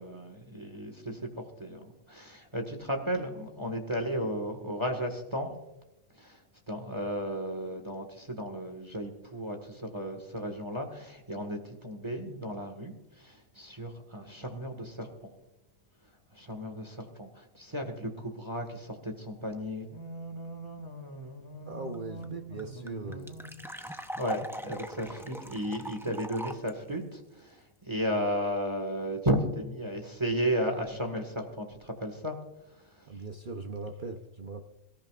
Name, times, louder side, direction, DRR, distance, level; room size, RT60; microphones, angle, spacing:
voice 1, 0.0-5.5 6.1-6.4 6.7-15.3 16.3-32.4 32.7-33.1, equal, 25° right, 4 dB, 1.7 m, -35 dB
voice 2, 21.7-23.4 33.1-34.7, right 3 dB, 45° right, 3 dB, 0.9 m, -40 dB
sound 1, 21.9-22.0 22.2-22.3 22.6-26.7, equal, 5° right, 0.5 m, -41 dB
23.5 x 14.5 x 2.4 m, 0.97 s
omnidirectional pair, 1.3 m